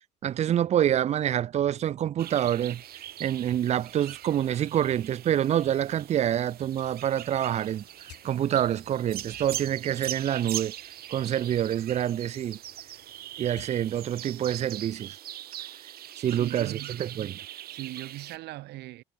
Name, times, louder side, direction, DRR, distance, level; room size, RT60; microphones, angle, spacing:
voice 1, 0.2-2.8 3.2-10.7 11.1-12.6 13.4-15.2 16.2-17.3, right 10 dB, 40° right, 0.4 m, -27 dB
sound 1, 2.2-18.4, right 13 dB, 65° right, 1.8 m, -41 dB
sound 2, 2.5-13.9, left 16 dB, 80° left, 4.8 m, -59 dB
voice 2, 16.3-17.0 17.7-19.0, right 18 dB, 85° right, 3.1 m, -39 dB
cardioid pair, 110°, 17 cm